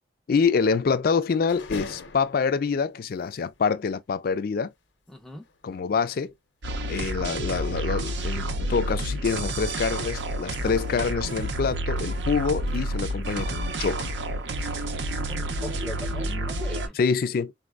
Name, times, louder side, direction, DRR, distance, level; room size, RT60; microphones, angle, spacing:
voice 1, 0.3-4.7 5.6-6.3 6.9-14.1 16.9-17.5, left 5 dB, 50° left, 0.4 m, -26 dB
sound 1, 1.3-2.8 3.2-3.3 3.5-3.7 5.4-5.6 6.0-6.3 6.8-13.6 13.9-14.9, left 3 dB, 80° left, 0.7 m, -46 dB
voice 2, 5.1-5.4 15.3-17.0, left 1 dB, ahead, 0.5 m, -39 dB
sound 2, 6.6-16.9, right 1 dB, 70° right, 0.6 m, -29 dB
4.0 x 2.1 x 2.3 m
head